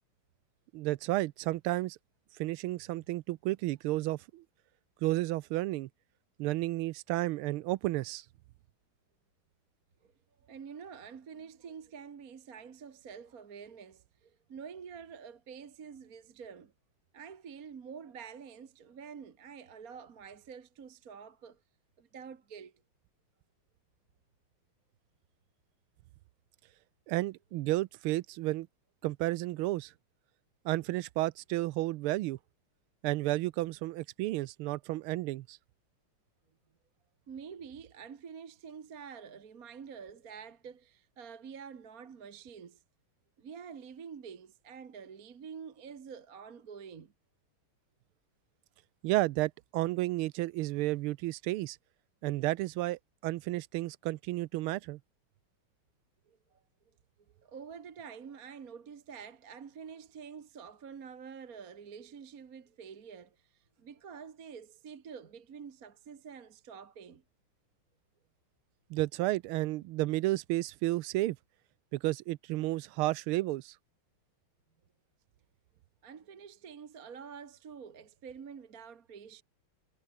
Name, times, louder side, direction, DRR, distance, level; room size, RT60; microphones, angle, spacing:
voice 1, 0.7-2.0 2.4-4.4 5.0-5.9 6.4-8.2 27.1-28.7 29.0-29.9 30.6-32.4 33.0-35.6 49.0-51.8 52.2-55.0 68.9-71.4 71.9-73.7, right 17 dB, 85° right, 1.5 m, -32 dB
voice 2, 10.4-16.7 17.1-21.6 22.0-22.8 37.3-42.8 43.4-47.1 56.3-56.6 57.4-67.2 76.0-79.4, right 6 dB, 45° right, 1.8 m, -47 dB
omnidirectional pair, 2.3 m